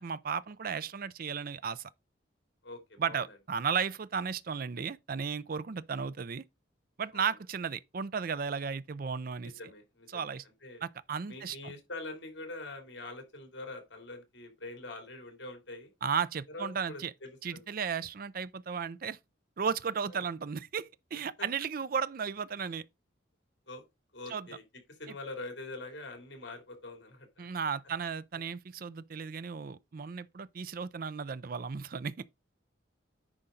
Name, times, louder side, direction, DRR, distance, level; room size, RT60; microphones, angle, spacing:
voice 1, 0.0-1.9 3.0-6.4 7.0-9.5 10.1-10.4 10.8-11.7 16.0-17.1 17.4-19.2 19.6-22.8 24.3-24.5 27.4-32.1, right 6 dB, 50° right, 0.4 m, -34 dB
voice 2, 2.6-3.2 7.1-7.3 9.4-10.2 10.6-10.8 11.3-15.9 16.5-17.6 20.1-20.2 21.4-21.5 23.7-23.8 24.1-24.6 25.0-27.5, left 2 dB, 65° left, 3.0 m, -44 dB
9.8 x 5.1 x 3.8 m
head